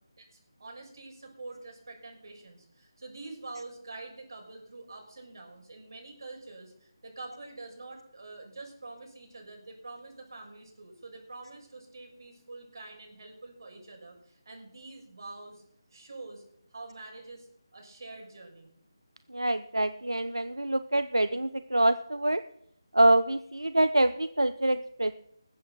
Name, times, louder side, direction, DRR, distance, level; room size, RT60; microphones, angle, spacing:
voice 1, 0.6-15.6 15.9-16.4 16.7-18.7, right 3 dB, 55° right, 2 dB, 6.5 m, -46 dB
voice 2, 19.3-22.4 22.9-25.1, right 1 dB, 80° right, 12 dB, 0.7 m, -25 dB
20.0 x 8.5 x 6.1 m, 0.71 s
figure-of-eight pair, 155°, 2 cm